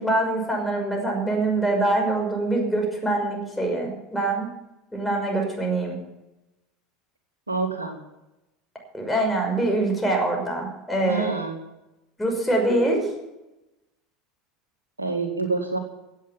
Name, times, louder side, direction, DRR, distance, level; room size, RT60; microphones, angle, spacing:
voice 1, 0.0-4.5 4.9-6.0 8.9-11.3 12.2-13.1, right 2 dB, 5° left, 1 dB, 6.0 m, -24 dB
voice 2, 7.5-8.0 11.1-11.6 15.0-15.8, right 4 dB, 80° right, 4 dB, 2.0 m, -27 dB
17.0 x 8.6 x 7.4 m, 0.94 s
figure-of-eight pair, 75°, 0 cm